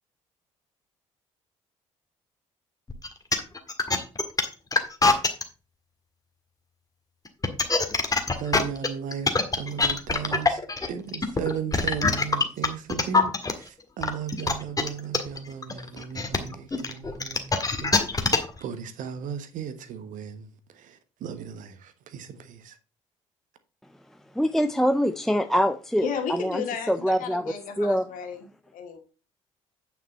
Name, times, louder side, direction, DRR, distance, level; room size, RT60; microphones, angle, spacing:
sound 1, 2.9-5.4 7.3-13.5 14.0-18.6, left 3 dB, 20° left, 1.7 m, -23 dB
voice 1, 8.4-10.6 10.9-20.5 20.9-21.0 21.2-22.7, right 7 dB, 55° right, 1.2 m, -36 dB
voice 2, 24.3-28.1, equal, ahead, 0.6 m, -25 dB
voice 3, 26.0-28.4 28.7-29.0, left 7 dB, 55° left, 2.2 m, -33 dB
9.4 x 5.9 x 4.3 m
figure-of-eight pair, 50°, 16 cm